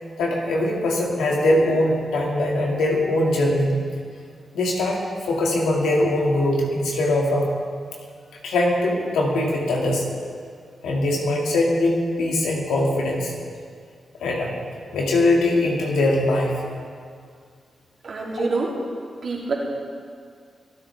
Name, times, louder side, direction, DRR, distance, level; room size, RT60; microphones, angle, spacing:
voice 1, 0.2-3.8 4.5-7.5 8.4-10.1 10.8-13.3 14.2-14.6 14.9-16.6, left 1 dB, 85° left, -2 dB, 2.2 m, -21 dB
voice 2, 18.0-18.7 19.2-19.5, right 3 dB, 65° right, -3 dB, 2.9 m, -26 dB
23.5 x 8.8 x 3.5 m, 2.1 s
supercardioid pair, 40°, 0 cm